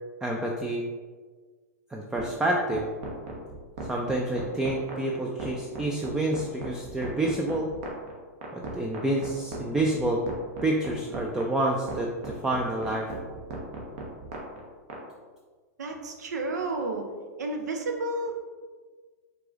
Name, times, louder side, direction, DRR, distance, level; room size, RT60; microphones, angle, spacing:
voice 1, 0.2-0.9 1.9-2.9 3.9-7.7 8.5-10.2 10.6-13.1, right 1 dB, 5° right, 0 dB, 0.4 m, -28 dB
sound 1, 2.2-15.0, right 3 dB, 50° right, 1.1 m, -37 dB
voice 2, 15.8-17.0 17.4-18.3, right 2 dB, 80° right, 3 dB, 0.8 m, -31 dB
4.7 x 3.8 x 2.4 m, 1.5 s
hypercardioid pair, 120°, 9 cm